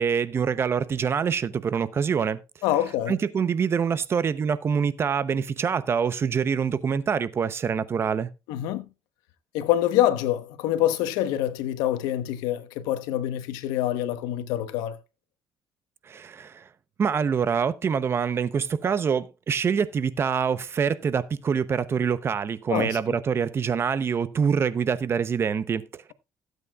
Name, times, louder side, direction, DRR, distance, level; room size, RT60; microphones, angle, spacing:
voice 1, 0.0-2.4 3.1-8.3 16.1-16.6 17.0-26.1, right 6 dB, 40° right, 0.8 m, -25 dB
voice 2, 2.6-3.2 8.5-8.9 9.5-15.0 22.7-23.0, left 12 dB, 90° left, 1.1 m, -25 dB
16.5 x 8.3 x 2.4 m
cardioid pair, 100°, 7 cm